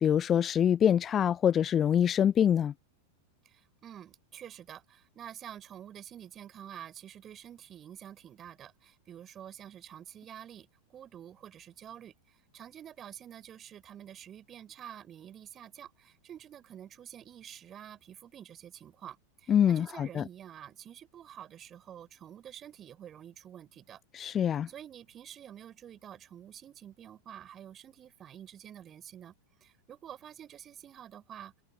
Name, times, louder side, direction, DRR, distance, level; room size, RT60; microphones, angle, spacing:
voice 1, 0.0-2.7 19.5-20.2 24.1-24.7, left 9 dB, 25° left, 0.4 m, -25 dB
voice 2, 3.4-24.0 24.7-29.3 29.6-31.5, right 10 dB, 25° right, 5.9 m, -48 dB
open air
figure-of-eight pair, 90°, 0 cm